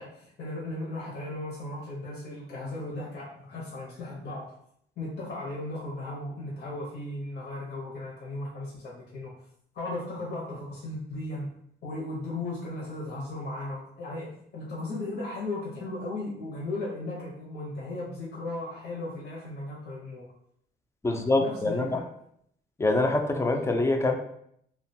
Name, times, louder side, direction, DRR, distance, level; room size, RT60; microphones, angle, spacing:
voice 1, 0.0-4.5 5.0-9.3 9.7-11.5 11.8-20.3 21.1-22.0, left 2 dB, 55° left, -5 dB, 0.8 m, -36 dB
voice 2, 21.0-22.0 22.8-24.2, left 2 dB, 15° left, 4 dB, 0.3 m, -25 dB
2.4 x 2.2 x 2.7 m, 0.69 s
cardioid pair, 90°, 20 cm